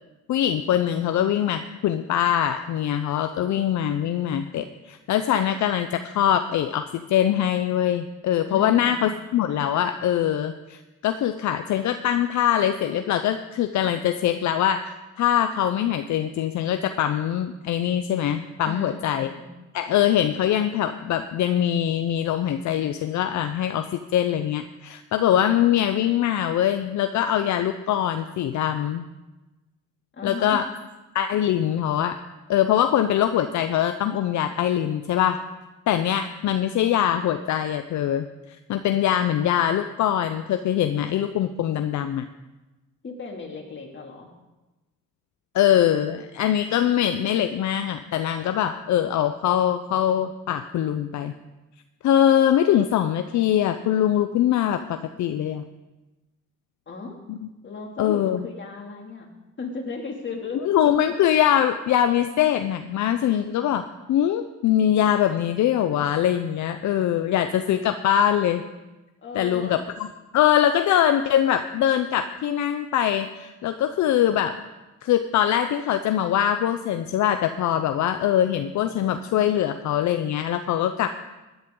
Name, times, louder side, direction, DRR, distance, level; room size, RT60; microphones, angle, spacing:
voice 1, 0.3-19.3 19.7-29.0 30.2-30.6 31.1-32.2 32.5-35.4 35.9-42.3 45.5-51.3 52.0-55.6 57.3-57.4 58.0-58.4 60.6-68.6 69.3-70.1 70.3-74.6 75.0-81.1, left 10 dB, 70° left, 8 dB, 0.7 m, -23 dB
voice 2, 8.5-9.1 18.6-19.5 30.1-30.6 43.0-44.3 56.9-57.2 57.6-59.3 59.6-60.6 69.2-69.8, left 4 dB, 40° left, 1 dB, 2.7 m, -36 dB
16.0 x 10.5 x 3.8 m, 1.1 s
cardioid pair, 90°, 30 cm